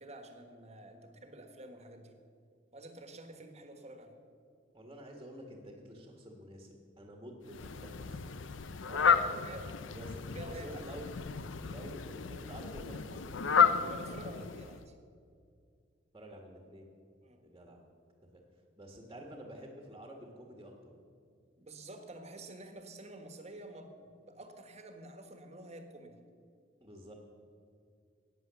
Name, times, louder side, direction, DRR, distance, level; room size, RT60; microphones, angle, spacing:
voice 1, 0.0-2.2 2.7-4.1 8.9-9.7 10.2-10.8 13.8-14.9 17.2-17.4 21.6-26.2, right 1 dB, 35° right, 6 dB, 1.5 m, -49 dB
voice 2, 4.7-8.2 8.8-9.5 9.8-11.1 11.6-13.3 16.1-16.9 17.4-17.8 18.3-18.4 18.7-20.7 26.8-27.1, equal, 20° right, 1 dB, 1.6 m, -49 dB
Fowl, 7.5-14.8, left 6 dB, 80° left, 0.6 m, -32 dB
15.0 x 9.3 x 6.9 m, 2.4 s
head